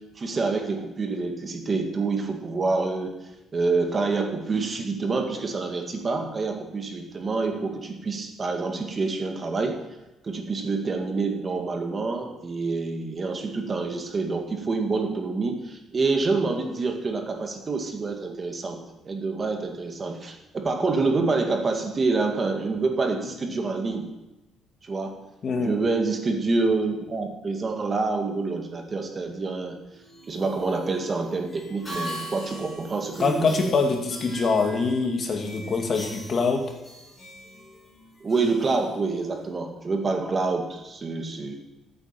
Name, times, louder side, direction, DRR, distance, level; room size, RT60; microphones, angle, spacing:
voice 1, 0.2-3.1 3.5-9.8 10.2-18.8 19.0-24.1 24.8-25.1 25.6-29.8 30.3-33.4 38.2-41.5, right 3 dB, 30° right, 3 dB, 2.0 m, -27 dB
voice 2, 25.4-25.8 31.9-32.0 33.2-36.7, left 4 dB, 40° left, 3 dB, 2.2 m, -24 dB
sound 1, 29.9-39.5, equal, 15° left, 5.1 m, -41 dB
14.0 x 8.8 x 5.9 m, 0.99 s
cardioid pair, 140°, 0 cm